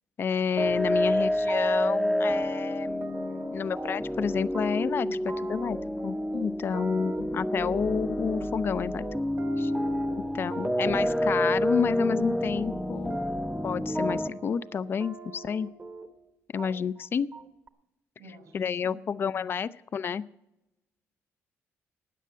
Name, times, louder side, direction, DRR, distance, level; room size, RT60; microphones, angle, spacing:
voice 1, 0.2-5.1 5.5-5.8 6.0-9.0 9.6-9.7 10.3-13.2 13.6-15.7 16.5-17.3 18.5-20.3, left 7 dB, 45° left, 16 dB, 0.5 m, -30 dB
sound 1, 0.6-14.3, equal, ahead, 0.7 m, -29 dB
sound 2, 1.1-2.0 2.2-4.3 4.5-16.3 16.6-17.1 17.3-17.7, right 4 dB, 35° right, 1.1 m, -42 dB
voice 2, 6.7-7.0 10.0-10.4 18.2-18.5 18.8-19.0, equal, 85° right, 1 dB, 6.6 m, -48 dB
13.5 x 9.3 x 7.5 m, 0.93 s
cardioid pair, 100°, 5 cm